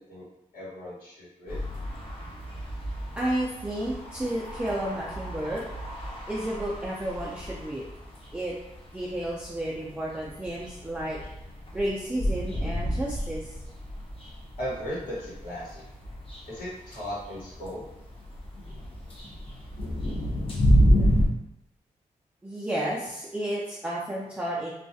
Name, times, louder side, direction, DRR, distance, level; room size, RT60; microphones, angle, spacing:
voice 1, 0.5-1.6 14.6-15.8 16.5-17.8, equal, 90° left, -8 dB, 1.1 m, -36 dB
sound 1, 1.5-21.3, equal, 40° left, 0.7 m, -30 dB
voice 2, 3.2-5.6 6.3-7.9 8.3-8.5 8.9-11.2 11.7-13.5 22.4-24.7, right 1 dB, 10° right, -6 dB, 0.4 m, -31 dB
2.3 x 2.1 x 2.6 m, 0.85 s
cardioid pair, 95°, 15 cm